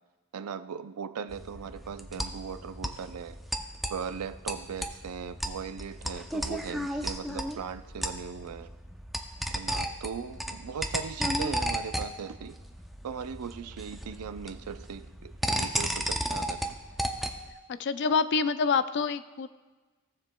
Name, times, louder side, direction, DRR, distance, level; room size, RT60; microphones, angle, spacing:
voice 1, 0.3-3.4 3.9-8.7 9.5-12.6 13.0-16.7, right 6 dB, 90° right, 11 dB, 0.4 m, -39 dB
sound 1, 1.3-17.5, equal, ahead, 0.5 m, -34 dB
voice 2, 17.7-19.5, left 5 dB, 55° left, 13 dB, 0.4 m, -27 dB
16.5 x 7.3 x 2.2 m, 1.3 s
head